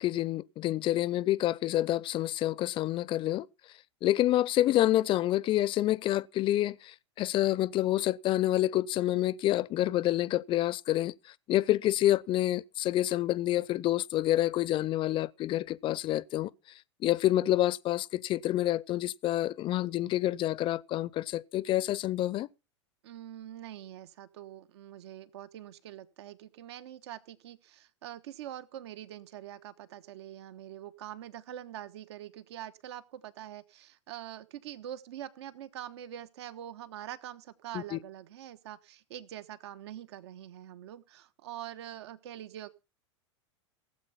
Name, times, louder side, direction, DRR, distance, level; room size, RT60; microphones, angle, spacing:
voice 1, 0.0-3.5 4.0-11.1 11.5-16.5 17.0-22.5 37.7-38.0, left 14 dB, 35° left, 0.6 m, -28 dB
voice 2, 23.0-42.7, right 11 dB, 65° right, 1.2 m, -44 dB
17.0 x 7.8 x 5.6 m
hypercardioid pair, 95°, 15 cm